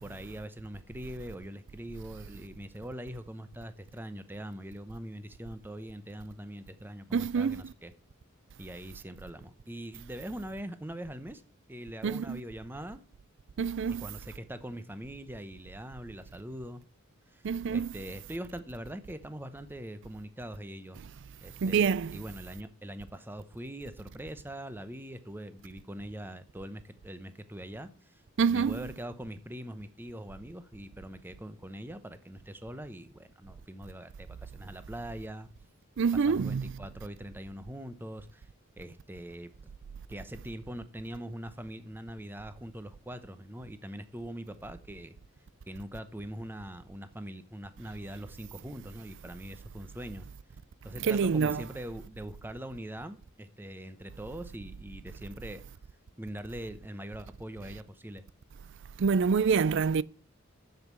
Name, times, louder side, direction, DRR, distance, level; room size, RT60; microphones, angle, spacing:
voice 1, 0.0-7.9 8.6-11.4 11.7-13.0 14.0-16.8 17.3-17.4 17.7-21.0 21.4-28.2 28.5-35.5 36.1-38.5 38.8-39.5 40.1-45.1 45.7-50.3 50.8-55.6 56.2-58.2, equal, 10° right, 0.8 m, -42 dB
voice 2, 7.1-7.6 12.0-12.4 13.6-14.1 17.4-17.9 21.6-22.2 28.4-28.8 36.0-36.7 51.0-51.6 59.0-60.0, right 5 dB, 60° right, 0.4 m, -26 dB
7.7 x 7.3 x 8.2 m
head